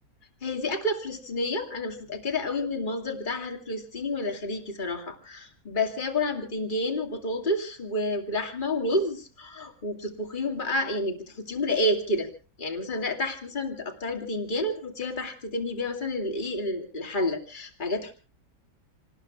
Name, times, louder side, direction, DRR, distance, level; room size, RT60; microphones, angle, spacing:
voice 1, 0.4-12.3 12.6-18.1, left 1 dB, 30° left, 2 dB, 2.4 m, -30 dB
28.0 x 19.5 x 2.4 m, 0.37 s
omnidirectional pair, 1.9 m